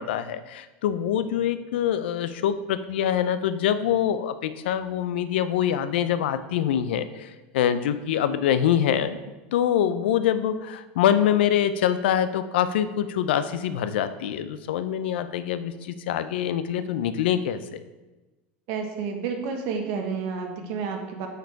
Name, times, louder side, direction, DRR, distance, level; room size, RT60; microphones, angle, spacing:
voice 1, 0.0-9.2 9.5-17.8, left 10 dB, 80° left, 12 dB, 0.5 m, -25 dB
voice 2, 18.7-21.3, right 5 dB, 65° right, 3 dB, 1.4 m, -30 dB
7.8 x 4.7 x 4.7 m, 1.1 s
supercardioid pair, 120°, 6 cm